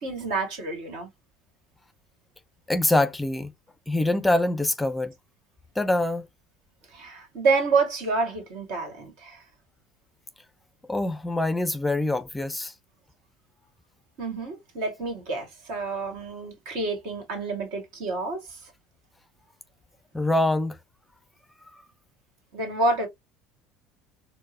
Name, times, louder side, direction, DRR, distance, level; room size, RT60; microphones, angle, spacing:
voice 1, 0.0-1.1 6.9-9.4 14.2-18.6 22.5-23.1, right 3 dB, 70° right, 1.5 m, -28 dB
voice 2, 2.7-3.5 3.9-5.1 5.8-6.3 10.9-12.7 20.1-20.8 21.7-21.8, left 2 dB, 10° left, 0.4 m, -24 dB
4.4 x 2.0 x 2.6 m
hypercardioid pair, 80°, 0 cm